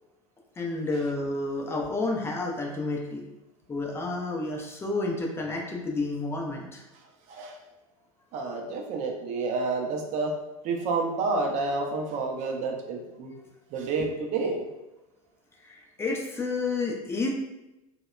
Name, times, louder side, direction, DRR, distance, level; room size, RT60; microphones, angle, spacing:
voice 1, 0.6-3.2 3.7-6.8 15.6-17.3, left 3 dB, 15° left, 0 dB, 0.4 m, -30 dB
voice 2, 8.3-10.3 10.6-13.3 13.7-14.6, right 3 dB, 40° right, 2 dB, 0.5 m, -29 dB
2.7 x 2.1 x 2.3 m, 0.98 s
figure-of-eight pair, 85°, 19 cm